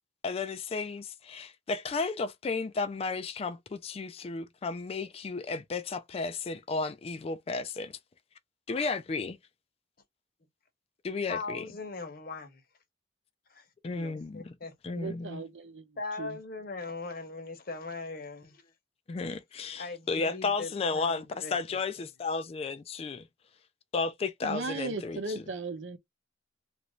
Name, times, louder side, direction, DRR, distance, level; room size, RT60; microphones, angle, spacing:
voice 1, 0.2-7.9 8.7-9.4 11.0-11.7 13.8-14.5 14.8-15.4 19.1-23.3 23.9-25.2, left 4 dB, 30° left, 0.3 m, -33 dB
voice 2, 11.3-12.6 13.5-13.6 14.3-14.7 16.0-18.6 19.8-21.5, left 3 dB, 50° left, 0.9 m, -39 dB
voice 3, 15.0-16.4 24.4-26.0, right 3 dB, 85° right, 0.7 m, -37 dB
2.9 x 2.5 x 3.1 m
head